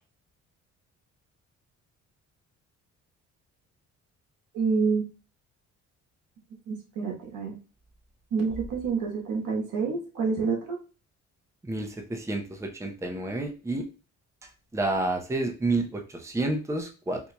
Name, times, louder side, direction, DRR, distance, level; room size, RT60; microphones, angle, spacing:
voice 1, 4.5-5.0 6.7-7.6 8.3-10.8, right 5 dB, 80° right, 0 dB, 1.2 m, -28 dB
voice 2, 11.6-13.9 14.7-17.2, right 2 dB, 10° right, 3 dB, 0.6 m, -29 dB
4.4 x 2.7 x 2.2 m, 0.34 s
cardioid pair, 90°, 30 cm